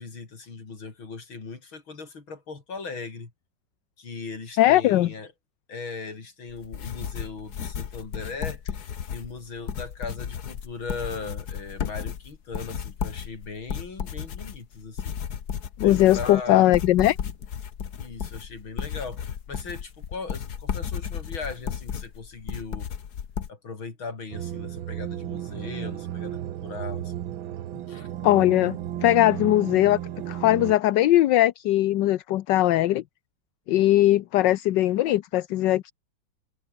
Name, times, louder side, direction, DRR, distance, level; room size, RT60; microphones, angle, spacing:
voice 1, 0.0-3.3 4.0-5.3 5.7-15.2 15.8-16.7 17.9-22.9 23.5-27.1 27.9-28.1, left 4 dB, 90° left, 4.9 m, -38 dB
voice 2, 4.6-5.1 15.8-17.2 28.2-30.0 30.3-33.0 33.7-35.9, left 14 dB, 70° left, 1.3 m, -20 dB
sound 1, 6.5-23.5, left 8 dB, 55° left, 1.8 m, -34 dB
sound 2, 24.3-30.8, right 11 dB, 85° right, 1.8 m, -34 dB
omnidirectional pair, 2.1 m